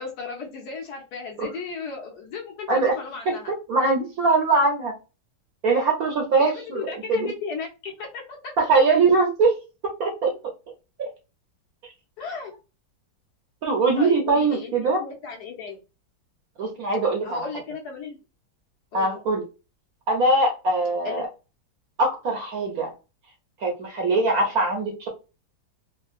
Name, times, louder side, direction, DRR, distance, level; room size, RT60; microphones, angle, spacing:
voice 1, 0.0-3.5 6.4-8.5 12.2-12.5 14.0-14.7 15.0-15.8 17.2-18.2 18.9-19.2 21.0-21.2, left 5 dB, 65° left, 0 dB, 1.2 m, -35 dB
voice 2, 3.5-4.9 5.6-7.3 8.6-9.5 10.0-10.3 13.6-15.0 16.6-17.5 18.9-19.4 20.1-21.2 22.0-22.9 23.6-25.1, right 3 dB, 60° right, 1 dB, 1.0 m, -22 dB
3.6 x 2.1 x 2.4 m, 0.30 s
omnidirectional pair, 2.1 m